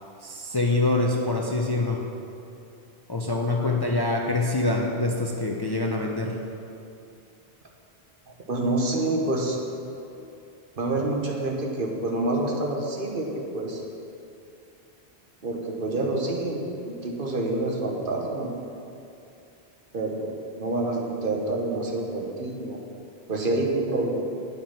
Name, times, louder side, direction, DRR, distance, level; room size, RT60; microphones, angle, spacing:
voice 1, 0.2-2.1 3.1-6.4, left 2 dB, 30° left, 0 dB, 0.5 m, -25 dB
voice 2, 8.5-9.6 10.8-13.8 15.4-18.5 19.9-22.8 23.3-24.2, right 2 dB, 60° right, 0 dB, 1.2 m, -27 dB
9.1 x 5.7 x 5.8 m, 2.6 s
omnidirectional pair, 1.0 m